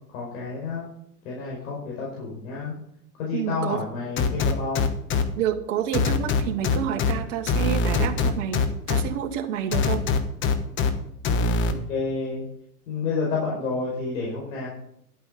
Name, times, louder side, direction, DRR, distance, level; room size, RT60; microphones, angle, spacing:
voice 1, 0.1-0.9 1.2-2.7 3.2-4.9 11.6-12.4 12.9-14.7, left 4 dB, 60° left, -4 dB, 5.2 m, -30 dB
voice 2, 3.3-3.8 5.4-10.1, right 9 dB, 50° right, 6 dB, 1.8 m, -29 dB
sound 1, 4.2-5.2 5.9-7.1 7.5-9.0 9.7-10.9 11.2-11.7, left 4 dB, 25° left, 1.2 m, -22 dB
11.5 x 8.8 x 5.3 m, 0.73 s
hypercardioid pair, 130°, 47 cm